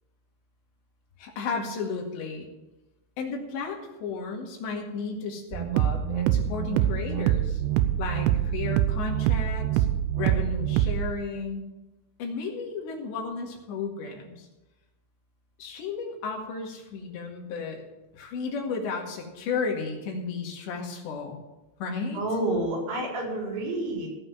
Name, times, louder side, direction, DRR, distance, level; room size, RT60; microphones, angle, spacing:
voice 1, 1.2-2.5 3.2-7.6 8.0-9.9 10.2-11.7 12.2-14.5 15.6-17.8 18.1-21.4 21.8-22.4, left 4 dB, 80° left, 0 dB, 4.2 m, -33 dB
sound 1, 5.5-11.1, right 11 dB, 85° right, 2.9 m, -25 dB
voice 2, 22.1-24.1, right 1 dB, 70° right, -3 dB, 6.8 m, -29 dB
16.5 x 5.9 x 7.4 m, 1.0 s
omnidirectional pair, 5.0 m